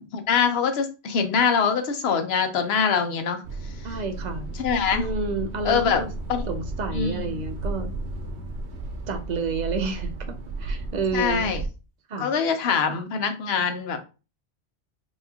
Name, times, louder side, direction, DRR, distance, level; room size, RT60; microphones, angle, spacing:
voice 1, 0.1-3.4 3.9-4.0 4.6-5.1 5.6-6.0 6.3-6.4 6.9-7.2 11.1-11.6 12.2-14.0, left 6 dB, 70° left, 0.9 m, -23 dB
sound 1, 3.4-11.7, right 2 dB, 85° right, 1.0 m, -33 dB
voice 2, 3.8-4.5 4.9-6.1 6.5-7.9 9.1-11.5 12.1-12.3, right 3 dB, 50° right, 0.6 m, -30 dB
4.6 x 2.3 x 2.8 m
omnidirectional pair, 1.1 m